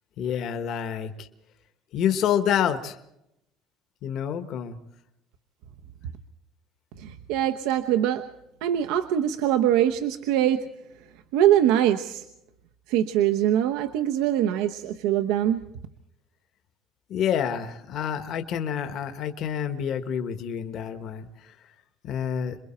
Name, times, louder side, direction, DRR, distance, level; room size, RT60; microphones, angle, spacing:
voice 1, 0.2-1.3 1.9-3.0 4.0-4.8 17.1-21.5 22.0-22.6, left 8 dB, 45° left, 8 dB, 1.3 m, -28 dB
voice 2, 7.0-8.2 8.6-10.6 11.3-12.2 12.9-15.6, right 11 dB, 85° right, 6 dB, 1.0 m, -23 dB
27.5 x 22.5 x 4.5 m, 0.83 s
cardioid pair, 175°, 0 cm